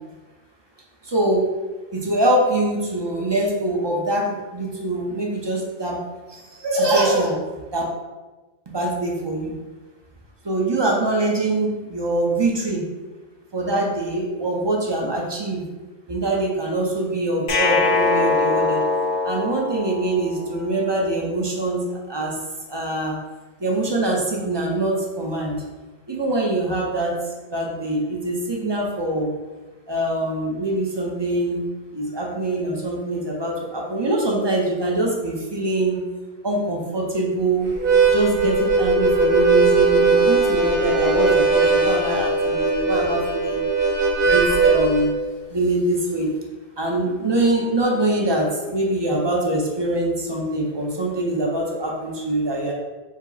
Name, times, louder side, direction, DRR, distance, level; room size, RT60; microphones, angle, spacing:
voice 1, 1.0-1.4 1.9-6.0 6.3-7.4 7.7-7.8 8.7-9.6 10.4-12.9 13.5-15.7 16.1-18.8 19.2-22.4 22.7-23.2 23.6-25.6 26.1-27.2 27.5-29.3 29.9-36.0 36.4-37.8 38.1-43.7 44.2-45.1 45.5-46.3 46.8-52.7, right 1 dB, 30° right, -1 dB, 0.6 m, -23 dB
sound 1, 17.5-20.6, left 3 dB, 50° left, 0.6 m, -22 dB
Harmonica, 37.7-45.1, right 4 dB, 60° right, 1.0 m, -19 dB
4.9 x 2.0 x 4.0 m, 1.2 s
omnidirectional pair, 1.0 m